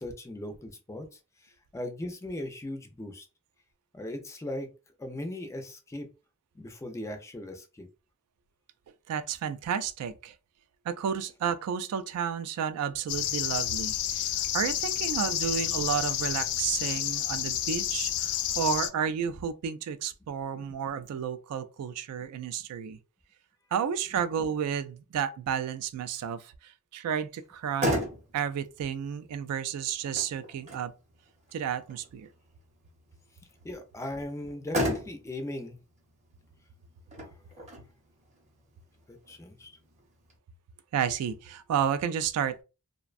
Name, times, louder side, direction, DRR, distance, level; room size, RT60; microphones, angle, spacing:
voice 1, 0.0-3.3 3.9-4.7 5.0-6.1 6.6-7.9 33.6-35.8 37.6-37.7 39.1-39.7, left 1 dB, 15° left, 0.3 m, -38 dB
voice 2, 9.1-10.3 10.9-23.0 23.7-28.0 28.3-30.9 31.5-32.3 40.9-42.6, right 8 dB, 85° right, 0.3 m, -31 dB
sound 1, 13.1-18.9, left 11 dB, 90° left, 0.3 m, -30 dB
Motor vehicle (road), 27.4-40.4, equal, 30° right, 0.7 m, -37 dB
2.5 x 2.2 x 2.3 m
head